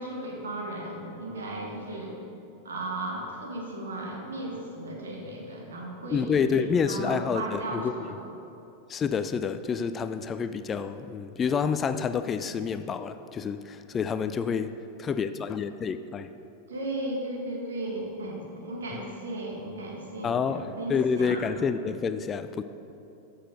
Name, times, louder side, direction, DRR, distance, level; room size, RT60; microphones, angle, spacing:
voice 1, 0.0-2.2 2.6-8.2 16.7-21.5, right 1 dB, 65° right, 0 dB, 1.8 m, -35 dB
voice 2, 6.1-7.9 8.9-16.3 20.2-22.6, left 6 dB, 25° left, 11 dB, 0.3 m, -28 dB
13.5 x 6.5 x 4.0 m, 2.9 s
figure-of-eight pair, 90°, 0 cm